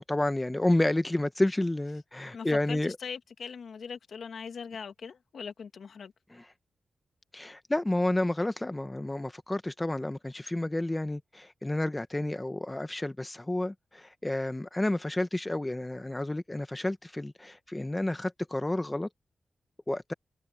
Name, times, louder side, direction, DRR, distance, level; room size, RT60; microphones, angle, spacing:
voice 1, 0.1-3.0 6.3-6.4 7.3-19.1 19.9-20.1, left 1 dB, 20° left, 1.1 m, -30 dB
voice 2, 2.3-6.1, left 6 dB, 75° left, 2.3 m, -40 dB
cardioid pair, 70°, 0 cm